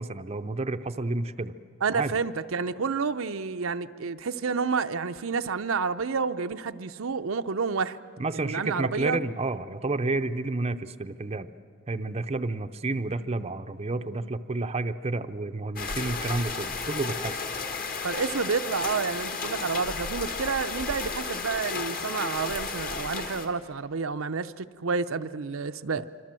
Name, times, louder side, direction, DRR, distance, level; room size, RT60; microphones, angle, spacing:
voice 1, 0.0-1.5 1.9-2.2 8.2-11.5 11.9-17.4, right 2 dB, 30° right, 8 dB, 0.6 m, -30 dB
voice 2, 1.8-8.0 8.3-9.2 18.0-26.1, right 5 dB, 70° right, 9 dB, 0.6 m, -29 dB
sound 1, 15.8-23.5, left 4 dB, 45° left, 1.8 m, -33 dB
26.0 x 25.0 x 7.6 m, 2.2 s
head